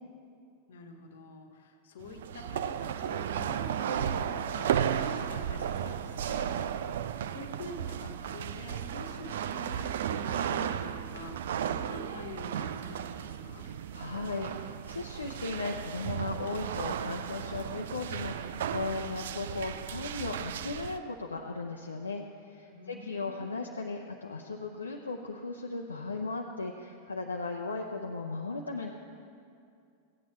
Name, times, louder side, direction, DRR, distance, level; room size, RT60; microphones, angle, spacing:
voice 1, 0.7-6.6 7.3-13.7 22.7-23.4, left 3 dB, 60° left, 5 dB, 1.1 m, -46 dB
sound 1, 2.0-21.0, right 9 dB, 60° right, 0.4 m, -34 dB
voice 2, 13.7-28.9, left 3 dB, 75° left, 1 dB, 0.6 m, -37 dB
15.5 x 8.8 x 4.3 m, 2.4 s
figure-of-eight pair, 90°, 0 cm